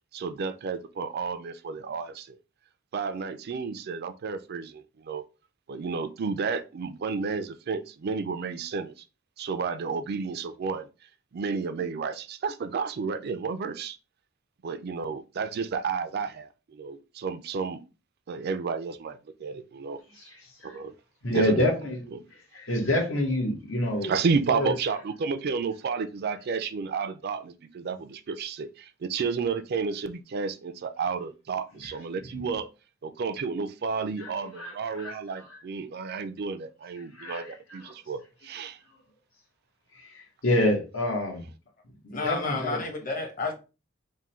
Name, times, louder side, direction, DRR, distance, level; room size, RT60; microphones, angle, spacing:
voice 1, 0.1-2.4 2.9-5.2 5.7-8.9 9.4-10.9 11.3-14.0 14.6-17.8 18.3-20.0 20.6-20.9 21.3-21.7 22.1-22.2 24.0-32.7 33.0-38.8, right 5 dB, 50° right, 0.4 m, -31 dB
voice 2, 20.2-20.8 21.2-22.0 22.3-24.1 24.5-24.7 34.2-35.6 37.0-37.9 39.9-41.5 42.0-42.8, left 1 dB, 80° left, 1.5 m, -28 dB
voice 3, 42.1-43.5, left 3 dB, 40° left, 1.0 m, -31 dB
3.6 x 2.2 x 4.2 m
head